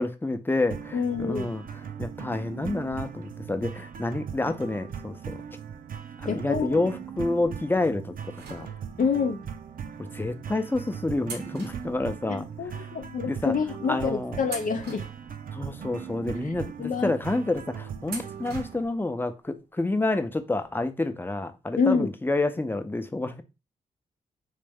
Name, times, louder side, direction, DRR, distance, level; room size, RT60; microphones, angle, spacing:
voice 1, 0.0-5.4 6.2-8.1 8.5-8.7 10.0-12.5 13.3-13.5 13.9-14.4 15.5-23.4, left 2 dB, 10° left, 0.6 m, -29 dB
sound 1, 0.7-18.9, right 7 dB, 60° right, 0.5 m, -39 dB
voice 2, 0.9-1.5 6.3-6.9 9.0-9.4 12.3-15.1 16.4-16.5 16.8-17.1 21.8-22.1, left 5 dB, 55° left, 0.5 m, -27 dB
sound 2, 8.4-9.2 10.0-10.2 11.2-12.7 13.0-13.1 13.8-14.0 14.4-15.8 16.3-16.4 18.1-19.0 19.3-19.4 20.6-20.7 21.0-21.1, right 4 dB, 85° right, 0.9 m, -43 dB
3.2 x 3.1 x 3.5 m
supercardioid pair, 50°, 17 cm